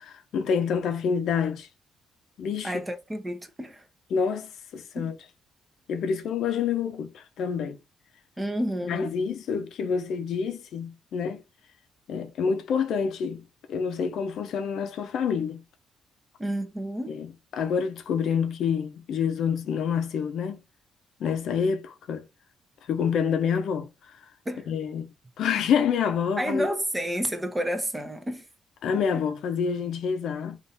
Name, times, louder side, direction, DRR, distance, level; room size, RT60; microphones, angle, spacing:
voice 1, 0.0-1.7 2.4-2.8 4.1-5.1 5.9-7.8 8.9-11.4 12.1-15.6 17.1-17.3 17.5-20.6 21.2-22.2 22.9-23.9 24.7-25.1 25.4-26.7 28.8-30.6, left 6 dB, 70° left, 0.8 m, -27 dB
voice 2, 2.6-3.9 5.0-5.1 8.4-9.1 16.4-17.2 24.5-24.7 26.4-28.4 29.1-29.2, equal, 15° right, 0.9 m, -30 dB
3.6 x 2.7 x 4.1 m
cardioid pair, 90°, 0 cm